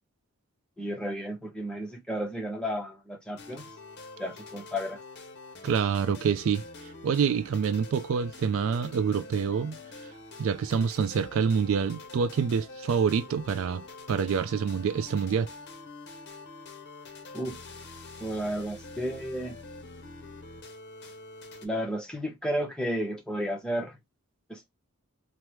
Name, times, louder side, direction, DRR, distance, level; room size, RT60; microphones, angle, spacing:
voice 1, 0.8-3.7 4.2-5.0 17.3-17.6 18.2-19.6 21.6-24.0 24.5-24.7, equal, 5° left, 0.7 m, -32 dB
sound 1, 3.4-21.7, left 3 dB, 50° left, 0.6 m, -46 dB
voice 2, 5.6-6.6 7.0-9.8 10.4-15.5, right 6 dB, 65° right, 0.3 m, -27 dB
3.4 x 2.1 x 2.9 m
head